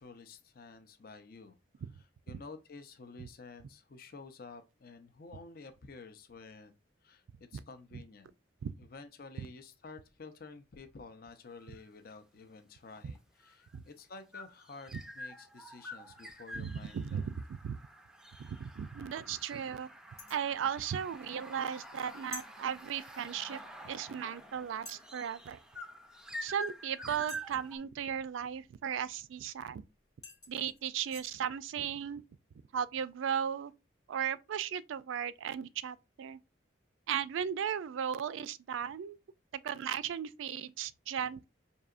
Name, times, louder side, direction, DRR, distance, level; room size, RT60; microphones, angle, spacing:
voice 1, 0.0-1.6 1.9-6.8 7.0-7.2 7.5-8.3 8.8-17.3, left 4 dB, 50° left, 0.5 m, -51 dB
sound 1, 11.5-11.9 13.0-27.8, equal, 5° right, 0.4 m, -48 dB
voice 2, 16.5-17.3 17.6-17.8 18.5-19.9 20.3-25.6 26.4-29.8 30.5-32.2 32.7-33.7 34.1-36.4 37.1-39.2 39.6-41.4, right 8 dB, 80° right, 0.3 m, -36 dB
sound 2, 20.2-20.5 22.3-22.5 23.9-24.0 24.9-25.1 27.3-27.7 29.7-29.8 30.2-31.3, left 1 dB, 15° left, 0.9 m, -48 dB
5.4 x 2.8 x 2.4 m
head